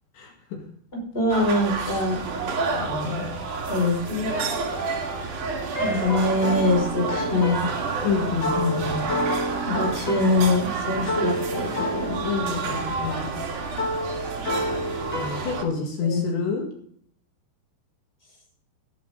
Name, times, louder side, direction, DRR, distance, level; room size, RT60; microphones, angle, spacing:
voice 1, 1.1-2.3 3.7-4.4 5.8-7.7 9.7-12.3 16.0-16.2, left 2 dB, 15° left, -1 dB, 5.6 m, -23 dB
sound 1, 1.3-15.6, right 4 dB, 55° right, 3.1 m, -30 dB
voice 2, 2.7-3.3 8.0-9.1 12.2-13.3 15.1-16.7, left 5 dB, 75° left, 1 dB, 4.3 m, -28 dB
sound 2, 4.2-15.5, equal, 30° left, 2.1 m, -31 dB
18.0 x 10.5 x 3.9 m, 0.62 s
omnidirectional pair, 5.0 m